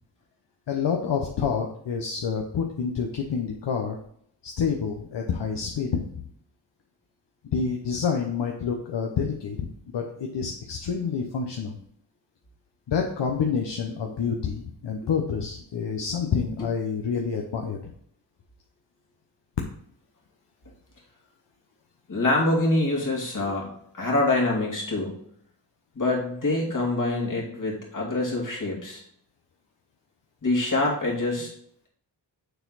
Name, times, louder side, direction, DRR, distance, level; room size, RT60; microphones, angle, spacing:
voice 1, 0.7-4.0 4.4-6.1 7.5-9.7 9.9-11.8 12.9-17.8, left 6 dB, 65° left, 1 dB, 0.9 m, -28 dB
voice 2, 22.1-25.2 25.9-29.0 30.4-31.5, left 2 dB, 40° left, -2 dB, 2.5 m, -25 dB
6.7 x 4.5 x 4.0 m, 0.66 s
cardioid pair, 70°, 45 cm